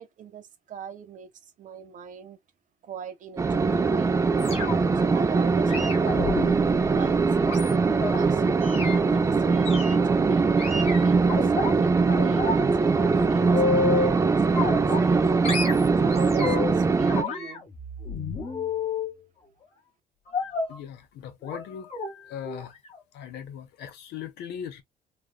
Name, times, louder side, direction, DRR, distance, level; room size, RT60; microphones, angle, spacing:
voice 1, 0.0-2.4 2.8-4.1 5.0-6.2 6.9-8.4 8.9-10.5 10.8-11.2 11.4-15.3 16.0-17.6, right 7 dB, 50° right, 0.9 m, -41 dB
sound 1, 3.4-17.2, right 4 dB, 20° right, 0.4 m, -22 dB
sound 2, 4.4-5.0 5.7-8.2 8.6-9.0 9.7-10.0 10.6-11.7 12.1-12.6 12.9-14.2 14.5-15.2 15.4-16.8 17.1-19.2 20.3-20.8 21.5-21.6 21.9-22.1 22.4-22.6 22.9-23.0, left 4 dB, 35° left, 1.3 m, -30 dB
voice 2, 20.7-21.9 22.3-22.7 23.1-24.8, left 9 dB, 75° left, 0.9 m, -39 dB
3.2 x 2.5 x 2.2 m
cardioid pair, 110°, 17 cm